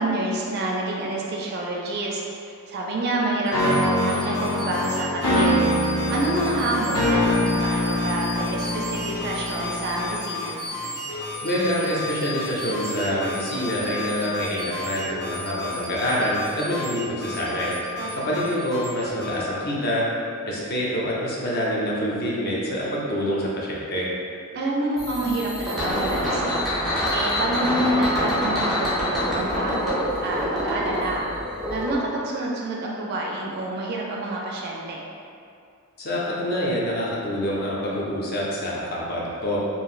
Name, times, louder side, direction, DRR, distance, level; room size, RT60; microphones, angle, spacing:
voice 1, 0.0-2.2 2.7-5.6 6.1-10.6 18.0-18.4 24.5-26.6 27.1-31.3 31.7-35.0, right 1 dB, 45° right, -3 dB, 0.4 m, -28 dB
sound 1, 3.5-10.4, left 1 dB, 85° left, 0.7 m, -24 dB
sound 2, 3.5-19.4, left 2 dB, 20° left, 1.0 m, -34 dB
voice 2, 11.4-17.7 18.2-20.1 20.4-24.1 36.0-39.6, equal, 45° left, -5 dB, 0.6 m, -26 dB
sound 3, 25.0-32.0, equal, ahead, 0.6 m, -26 dB
2.9 x 2.6 x 2.4 m, 2.4 s
head